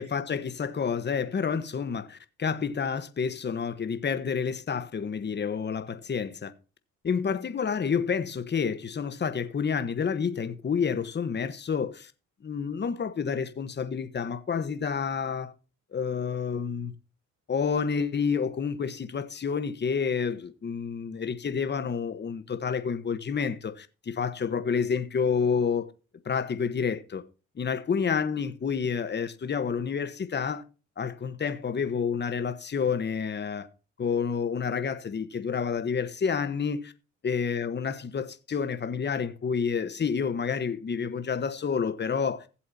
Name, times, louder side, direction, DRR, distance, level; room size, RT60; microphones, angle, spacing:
voice 1, 0.0-6.5 7.0-12.1 12.4-15.5 15.9-16.9 17.5-25.9 26.2-27.2 27.6-30.6 31.0-33.7 34.0-36.9 37.2-42.5, left 6 dB, 35° left, 1.2 m, -29 dB
15.5 x 7.7 x 2.8 m
cardioid pair, 90°, 30 cm